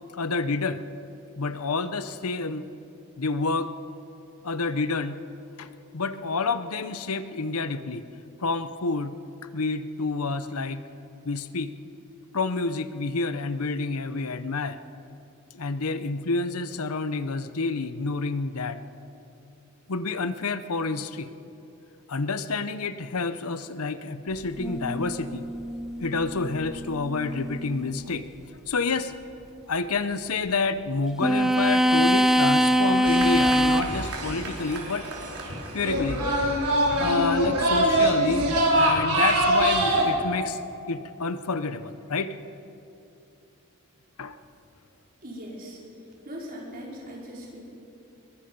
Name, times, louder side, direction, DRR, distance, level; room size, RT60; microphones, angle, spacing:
voice 1, 0.1-0.8 1.4-2.7 3.2-3.7 4.4-5.2 5.6-8.0 8.4-9.1 9.5-10.8 11.2-11.7 12.3-14.8 15.5-18.8 19.9-21.3 22.1-25.5 26.0-28.3 28.7-29.1 29.7-35.1 35.7-36.2 37.0-40.6 40.9-42.4 44.2-44.4, left 3 dB, 80° left, 12 dB, 0.8 m, -28 dB
sound 1, 24.6-28.1 31.2-33.8, equal, ahead, 0.4 m, -24 dB
sound 2, 33.1-40.1, right 1 dB, 90° right, 4.1 m, -24 dB
voice 2, 45.2-45.8 46.2-47.6, equal, 40° right, -3 dB, 4.9 m, -39 dB
22.5 x 21.5 x 5.4 m, 2.8 s
head